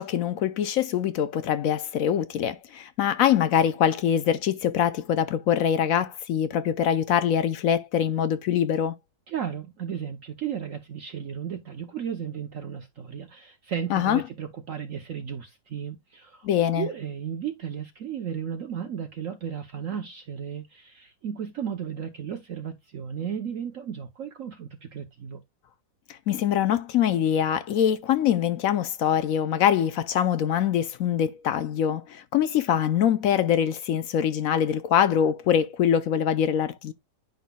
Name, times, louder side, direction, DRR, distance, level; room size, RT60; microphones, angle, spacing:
voice 1, 0.0-8.9 13.9-14.2 16.4-16.9 26.1-36.9, left 9 dB, 70° left, 0.8 m, -24 dB
voice 2, 9.3-16.5 16.8-25.4, right 8 dB, 60° right, 0.9 m, -34 dB
10.0 x 5.7 x 2.2 m
omnidirectional pair, 1.9 m